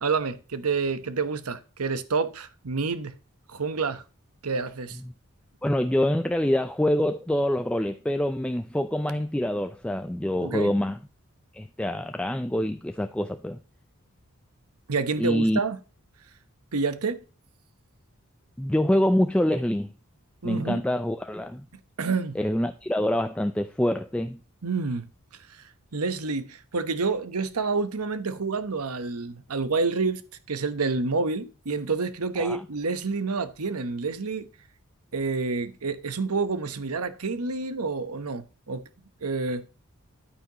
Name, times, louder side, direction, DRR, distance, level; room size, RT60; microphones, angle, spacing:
voice 1, 0.0-3.1 3.5-4.0 4.4-5.0 10.4-10.8 14.9-15.8 16.7-17.2 20.4-20.8 22.0-22.4 24.6-25.1 25.9-30.2 30.5-34.5 35.1-38.9 39.2-39.7, right 4 dB, 90° right, 1.0 m, -28 dB
voice 2, 5.6-11.0 11.5-13.6 15.2-15.6 18.6-19.9 20.4-21.7 22.4-24.4 32.4-32.6, left 1 dB, 5° left, 0.4 m, -25 dB
10.0 x 9.3 x 2.9 m
head